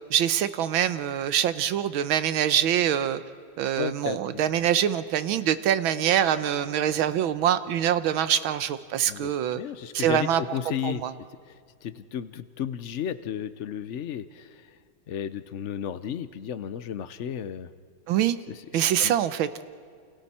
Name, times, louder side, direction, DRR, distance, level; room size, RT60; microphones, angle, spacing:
voice 1, 0.1-3.2 3.6-9.6 9.9-10.6 10.8-11.1 18.1-18.4 18.7-19.5, right 10 dB, 80° right, 12 dB, 1.6 m, -24 dB
voice 2, 3.8-4.2 9.1-11.0 11.5-14.8 15.1-17.7 18.5-18.6 19.0-19.1, left 9 dB, 75° left, 13 dB, 0.6 m, -33 dB
29.0 x 28.5 x 4.3 m, 2.2 s
omnidirectional pair, 2.2 m